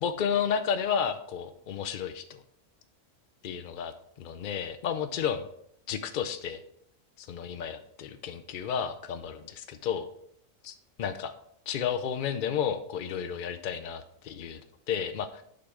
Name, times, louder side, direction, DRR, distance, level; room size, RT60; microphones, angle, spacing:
voice 1, 0.0-2.4 3.4-3.9 4.2-5.5 5.9-6.6 7.2-10.1 10.6-10.7 11.0-11.3 11.7-14.6 14.9-15.4, left 8 dB, 85° left, 10 dB, 0.4 m, -32 dB
6.6 x 5.8 x 3.7 m, 0.70 s
omnidirectional pair, 1.5 m